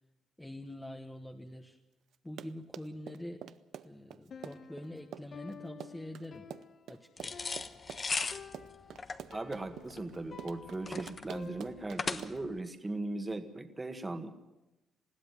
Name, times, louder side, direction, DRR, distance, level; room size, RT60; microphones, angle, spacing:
voice 1, 0.4-1.8 2.2-3.5 3.8-6.5 6.9-7.5, left 1 dB, 10° left, 3 dB, 1.4 m, -45 dB
Run, 2.1-12.6, right 10 dB, 70° right, 0.7 m, -47 dB
Piano, 4.3-12.2, left 5 dB, 50° left, 1.3 m, -51 dB
sound 1, 7.2-12.6, left 4 dB, 35° left, 1.1 m, -38 dB
voice 2, 9.3-14.3, right 2 dB, 20° right, 7 dB, 1.8 m, -38 dB
21.0 x 15.5 x 9.3 m, 0.97 s
cardioid pair, 90°, 0 cm